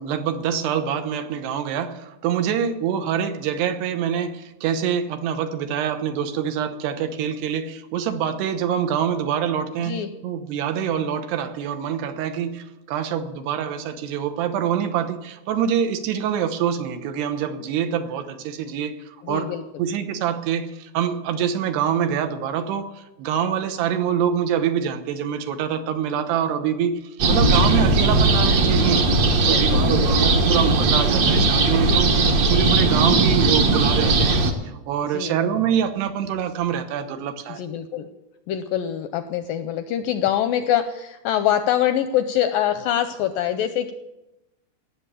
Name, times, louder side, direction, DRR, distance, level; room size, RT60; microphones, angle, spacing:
voice 1, 0.0-19.5 19.8-32.1 32.5-34.4 34.6-37.6, right 8 dB, 90° right, 8 dB, 3.2 m, -25 dB
voice 2, 19.2-19.6 29.5-30.0 31.7-32.3 35.1-35.4 37.5-38.1 38.5-43.9, left 10 dB, 80° left, 10 dB, 2.0 m, -24 dB
sound 1, 27.2-34.5, right 3 dB, 55° right, 2.1 m, -18 dB
18.0 x 7.5 x 8.3 m, 0.97 s
omnidirectional pair, 4.6 m